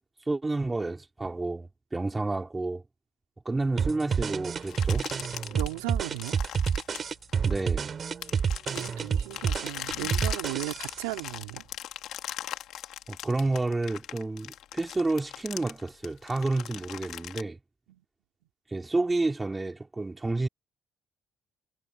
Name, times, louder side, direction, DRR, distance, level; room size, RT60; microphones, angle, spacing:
voice 1, 0.3-2.8 3.4-5.1 7.4-7.9 13.1-17.6 18.7-20.5, right 2 dB, 20° right, 4.9 m, -30 dB
sound 1, 3.8-11.1, right 6 dB, 45° right, 6.1 m, -29 dB
sound 2, 4.6-7.8 8.2-17.4, left 12 dB, 70° left, 3.7 m, -39 dB
voice 2, 5.5-6.4 8.7-11.6 17.9-18.0, right 24 dB, 85° right, 4.5 m, -36 dB
hypercardioid pair, 55°, 0 cm